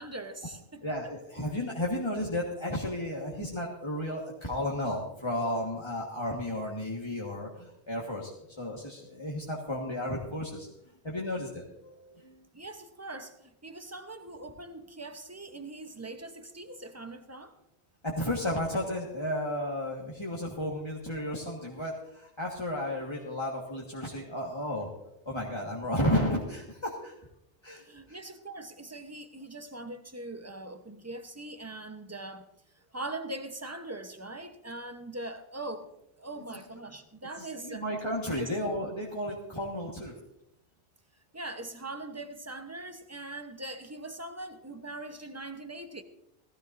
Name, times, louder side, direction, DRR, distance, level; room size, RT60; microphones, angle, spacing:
voice 1, 0.0-0.8 12.5-17.6 27.9-32.5 32.9-35.9 36.2-37.8 38.4-38.5 41.3-46.0, right 2 dB, 15° right, 7 dB, 0.9 m, -41 dB
voice 2, 0.8-8.3 8.6-10.7 11.0-12.4 18.0-25.0 25.2-27.1 27.6-27.8 28.1-28.2 36.3-36.4 37.4-40.2, left 1 dB, 25° left, -3 dB, 1.6 m, -33 dB
18.5 x 16.0 x 2.7 m, 0.83 s
omnidirectional pair, 1.1 m